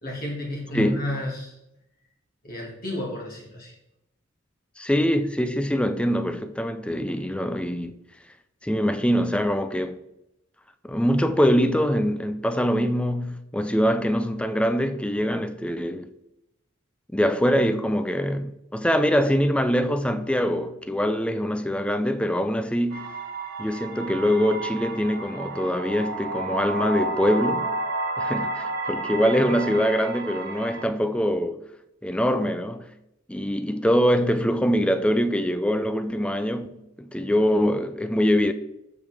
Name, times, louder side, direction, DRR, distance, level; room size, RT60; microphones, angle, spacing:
voice 1, 0.0-1.5 2.4-3.7, left 1 dB, 45° left, 2.3 m, -32 dB
voice 2, 0.7-1.1 4.8-7.9 8.6-10.0 10.8-16.1 17.1-23.1 23.6-27.7 28.2-31.6 32.0-32.9 33.3-38.5, equal, 5° left, 0.5 m, -23 dB
sound 1, 22.9-30.8, right 2 dB, 55° right, 1.6 m, -31 dB
13.5 x 5.1 x 3.5 m
head